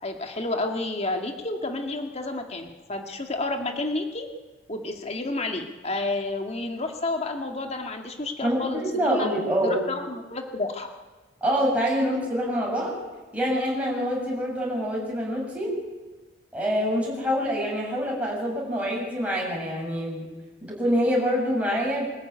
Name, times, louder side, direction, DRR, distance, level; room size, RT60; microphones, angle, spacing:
voice 1, 0.0-4.3 4.7-9.3 9.6-10.9, left 2 dB, 35° left, 4 dB, 2.0 m, -30 dB
voice 2, 8.4-9.8 11.4-12.9 13.3-15.7 16.5-20.3 20.7-22.1, equal, 10° right, -4 dB, 7.3 m, -26 dB
24.5 x 14.0 x 9.6 m, 1.2 s
head